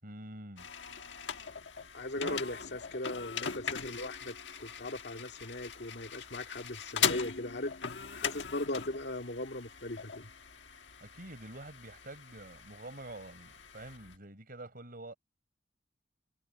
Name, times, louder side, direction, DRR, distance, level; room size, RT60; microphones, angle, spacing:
voice 1, 0.0-0.7 2.2-2.4 11.0-15.1, right 2 dB, 50° right, 5.7 m, -47 dB
sound 1, 0.6-14.2, left 7 dB, 80° left, 1.5 m, -40 dB
voice 2, 1.9-7.7 8.1-10.3, left 1 dB, 65° left, 2.3 m, -39 dB
head